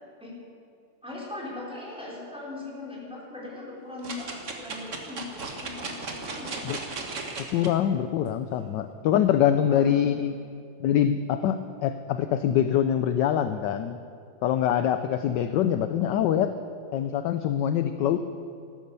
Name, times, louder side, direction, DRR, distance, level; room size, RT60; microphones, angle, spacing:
voice 1, 1.0-6.8 8.6-8.7 9.7-10.1, left 2 dB, ahead, -5 dB, 3.7 m, -40 dB
sound 1, 4.0-7.7 8.3-8.4, right 3 dB, 40° right, 1.6 m, -36 dB
voice 2, 7.5-10.3 10.8-14.0 14.4-16.5 16.9-18.2, left 10 dB, 70° left, 10 dB, 1.1 m, -24 dB
14.5 x 12.0 x 6.9 m, 2.3 s
omnidirectional pair, 2.3 m